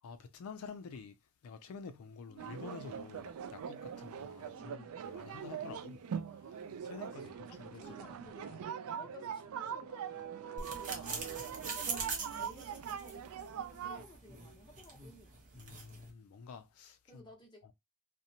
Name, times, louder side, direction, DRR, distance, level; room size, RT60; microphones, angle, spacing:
voice 1, 0.0-1.2 1.4-8.0 8.4-8.6 10.9-11.8 15.5-17.2 17.6-17.7, left 5 dB, 80° left, 0.4 m, -50 dB
voice 2, 2.3-2.6 4.4-5.0 7.0-8.5 8.8-11.1 11.6-11.9 12.4-15.4 17.1-17.7, left 1 dB, 20° left, 0.8 m, -57 dB
sound 1, 2.4-14.0, right 8 dB, 75° right, 0.3 m, -42 dB
sound 2, 10.6-16.1, right 4 dB, 35° right, 0.7 m, -43 dB
2.8 x 2.1 x 2.7 m
head